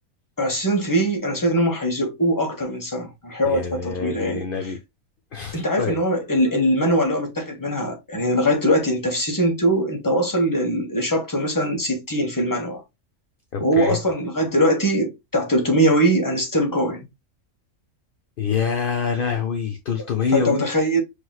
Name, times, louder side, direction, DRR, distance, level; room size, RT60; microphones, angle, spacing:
voice 1, 0.4-4.7 5.5-12.8 13.6-17.1 20.0-21.0, equal, 15° left, 1.1 m, -22 dB
voice 2, 3.4-4.8 5.3-6.0 13.5-14.0 18.4-20.6, left 6 dB, 55° left, 0.6 m, -25 dB
5.9 x 3.1 x 2.3 m
omnidirectional pair, 1.5 m